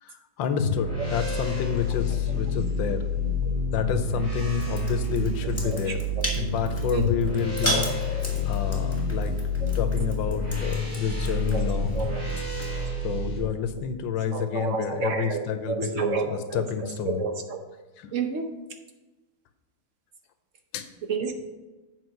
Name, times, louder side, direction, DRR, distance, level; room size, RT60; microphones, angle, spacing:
voice 1, 0.0-3.0 3.7-6.0 6.3-8.2 8.4-9.4 9.7-12.1 13.0-17.2 18.0-18.1 20.7-20.9, left 7 dB, 80° left, 9 dB, 1.4 m, -29 dB
sound 1, 0.6-13.4, left 3 dB, 45° right, 3.6 m, -28 dB
sound 2, 4.6-12.9, equal, 10° left, 1.3 m, -35 dB
voice 2, 14.3-16.6 17.1-17.6 18.1-18.5 21.1-21.3, right 5 dB, 60° right, 5 dB, 0.8 m, -30 dB
7.7 x 5.1 x 5.7 m, 1.1 s
omnidirectional pair, 2.1 m